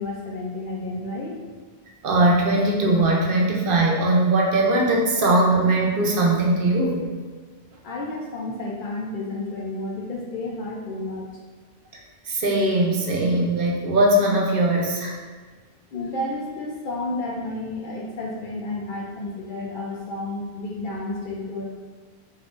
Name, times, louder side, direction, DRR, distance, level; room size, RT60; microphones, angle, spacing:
voice 1, 0.0-1.4 7.8-11.3 15.9-21.6, left 2 dB, 60° left, -2 dB, 0.6 m, -31 dB
voice 2, 2.0-7.1 12.3-15.2, right 1 dB, 65° right, -1 dB, 0.7 m, -20 dB
4.1 x 2.5 x 2.4 m, 1.4 s
omnidirectional pair, 1.1 m